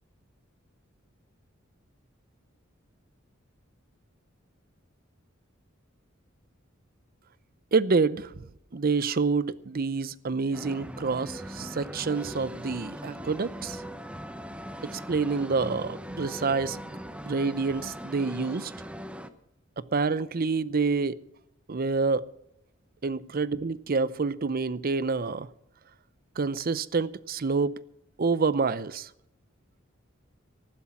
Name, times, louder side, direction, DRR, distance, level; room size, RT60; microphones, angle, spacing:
voice 1, 7.7-8.4 8.7-13.8 14.9-16.8 17.2-18.7 19.9-21.2 21.7-22.2 23.0-25.5 26.4-27.7 28.2-29.1, right 4 dB, 50° right, 0.6 m, -27 dB
sound 1, 10.5-19.3, equal, 5° right, 0.8 m, -40 dB
15.0 x 11.5 x 5.9 m
head